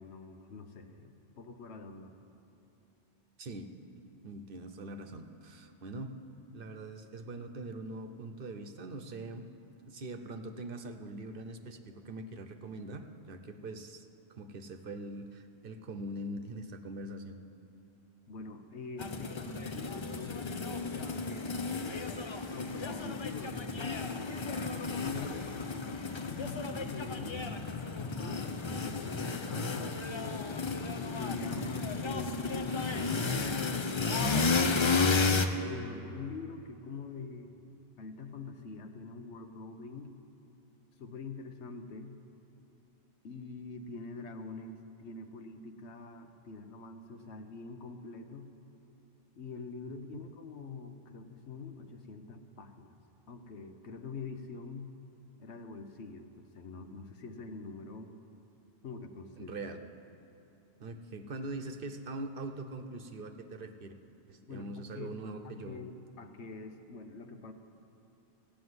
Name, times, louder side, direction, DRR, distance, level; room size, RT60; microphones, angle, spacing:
voice 1, 0.0-2.1 18.3-22.1 22.5-23.9 24.5-25.5 26.3-27.6 28.0-30.5 31.2-34.6 35.6-37.6 38.0-40.1 41.0-42.2 43.2-48.5 49.3-53.0 53.3-54.9 55.4-58.1 58.8-59.5 64.4-65.1 65.4-67.5, left 4 dB, 80° left, 6 dB, 1.2 m, -45 dB
voice 2, 3.4-3.7 4.0-6.2 6.5-9.4 9.9-14.1 14.4-17.4 31.6-31.9 50.1-50.3 59.4-59.8 60.8-63.9 64.3-65.8, right 2 dB, 55° right, 7 dB, 0.9 m, -42 dB
sound 1, 19.0-35.5, left 4 dB, 35° left, 0.5 m, -33 dB
15.5 x 6.9 x 9.5 m, 2.9 s
omnidirectional pair, 1.1 m